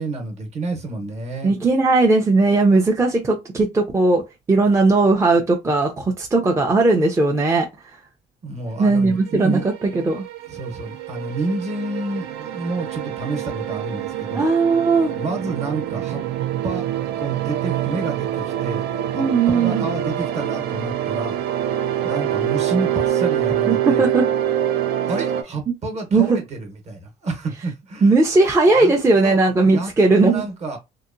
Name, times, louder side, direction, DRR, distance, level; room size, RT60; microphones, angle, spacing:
voice 1, 0.0-1.5 8.4-9.6 10.5-14.5 15.1-16.2 16.6-16.8 17.2-18.9 19.1-21.4 22.0-24.0 25.0-28.1 28.7-28.9 29.2-29.9 30.2-30.8, right 2 dB, 40° right, 0.9 m, -29 dB
voice 2, 1.4-7.7 8.8-10.2 14.3-15.1 19.2-19.8 23.7-24.3 26.1-26.4 28.0-30.5, right 3 dB, 15° right, 0.4 m, -17 dB
sound 1, 9.3-25.4, right 11 dB, 80° right, 0.5 m, -25 dB
2.7 x 2.1 x 2.4 m
cardioid pair, 110°, 17 cm